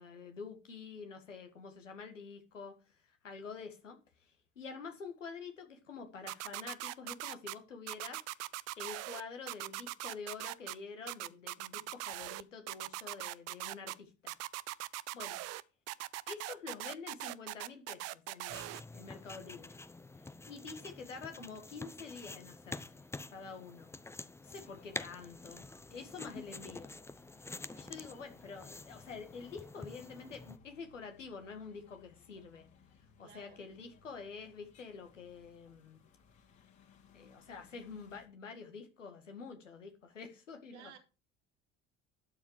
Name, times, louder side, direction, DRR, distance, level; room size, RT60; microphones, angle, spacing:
voice 1, 0.0-14.4 15.1-15.4 16.3-19.8 20.5-23.1 23.3-23.9 24.4-26.9 27.8-32.7 33.2-36.0 37.1-40.9, left 5 dB, 80° left, 1.8 m, -48 dB
sound 1, 6.3-7.5 7.9-9.2 9.5-10.7 11.1-12.4 12.7-13.9 14.3-15.6 15.9-18.8, right 18 dB, 45° right, 0.6 m, -41 dB
pencil writing, 18.5-30.6, left 2 dB, 5° left, 0.6 m, -48 dB
sound 2, 24.4-38.3, left 6 dB, 50° left, 3.3 m, -64 dB
voice 2, 27.6-28.0 33.2-33.7 40.7-41.0, right 9 dB, 70° right, 2.6 m, -57 dB
12.5 x 7.2 x 4.7 m
figure-of-eight pair, 60°, 37 cm